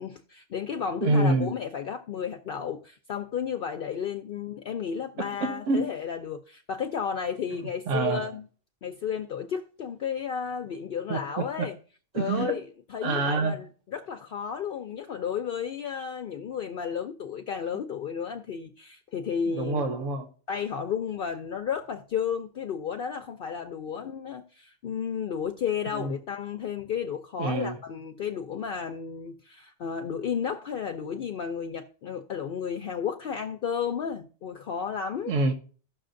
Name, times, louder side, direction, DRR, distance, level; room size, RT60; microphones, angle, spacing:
voice 1, 0.0-8.4 8.8-11.8 12.1-12.6 12.9-19.8 20.5-35.3, left 7 dB, 60° left, 0.7 m, -33 dB
voice 2, 1.0-1.5 5.2-5.9 7.9-8.3 11.1-11.7 12.1-12.6 13.0-13.6 19.5-20.3 25.9-26.1 27.4-27.8 35.3-35.5, right 3 dB, 85° right, 1.1 m, -27 dB
15.5 x 6.2 x 2.5 m
omnidirectional pair, 1.3 m